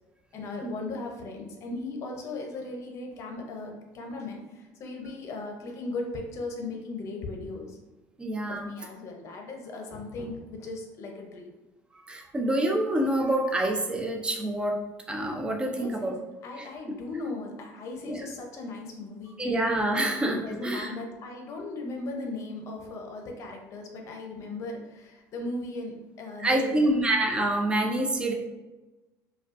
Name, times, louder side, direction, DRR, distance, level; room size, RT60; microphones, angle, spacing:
voice 1, 0.3-7.8 8.5-11.5 15.7-16.2 16.4-19.4 20.4-26.8, left 2 dB, 45° left, 2 dB, 0.6 m, -37 dB
voice 2, 8.2-8.6 12.1-14.8 15.1-16.1 18.1-18.2 19.4-20.9 26.4-28.3, right 1 dB, 15° right, 1 dB, 0.4 m, -26 dB
5.0 x 2.3 x 2.5 m, 1.1 s
cardioid pair, 165°, 7 cm